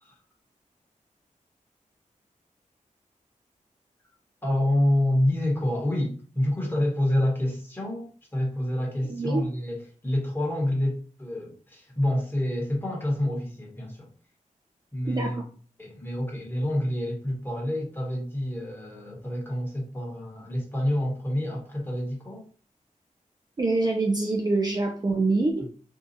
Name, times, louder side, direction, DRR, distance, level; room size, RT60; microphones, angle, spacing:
voice 1, 4.4-14.1 14.9-15.5 15.8-22.4, left 1 dB, 15° left, -2 dB, 1.2 m, -28 dB
voice 2, 9.1-9.4 15.1-15.4 23.6-25.7, right 3 dB, 30° right, 2 dB, 0.5 m, -25 dB
2.7 x 2.3 x 3.9 m, 0.41 s
wide cardioid pair, 105°, 14 cm